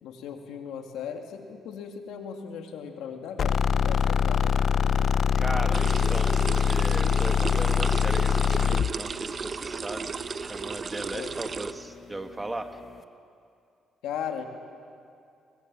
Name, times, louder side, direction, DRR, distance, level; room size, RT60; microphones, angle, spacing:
voice 1, 0.0-4.5 11.1-11.3 14.0-14.4, left 7 dB, 90° left, 4 dB, 2.2 m, -37 dB
sound 1, 3.4-8.9, left 7 dB, 55° left, 0.5 m, -23 dB
sound 2, 3.8-13.0, left 5 dB, 35° left, 1.1 m, -49 dB
voice 2, 5.4-12.8, right 2 dB, 15° right, 6 dB, 1.6 m, -37 dB
sound 3, 5.7-11.7, right 5 dB, 45° right, 0.8 m, -35 dB
23.0 x 20.0 x 7.5 m, 2.4 s
cardioid pair, 90°, 0 cm